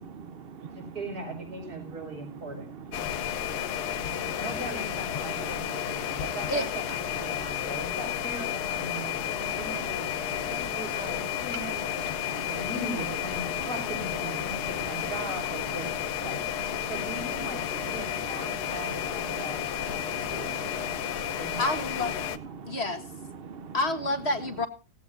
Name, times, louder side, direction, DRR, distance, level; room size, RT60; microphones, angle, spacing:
voice 1, 0.2-0.9 3.1-4.4 9.2-9.3 12.2-12.6 16.8-16.9 18.7-18.8 19.5-20.3 20.9-21.4 22.6-22.8 23.4-23.7, right 5 dB, 45° right, 0.9 m, -43 dB
voice 2, 0.7-2.7 4.3-10.1 10.5-16.4 16.9-17.6 17.9-19.6 20.3-20.6 21.3-22.6, right 2 dB, 75° right, 5.9 m, -39 dB
sound 1, 2.9-22.4, left 11 dB, 85° left, 1.4 m, -32 dB
voice 3, 21.6-22.1 22.7-23.0 23.7-24.7, left 2 dB, 45° left, 1.6 m, -28 dB
17.5 x 15.5 x 2.6 m
omnidirectional pair, 1.7 m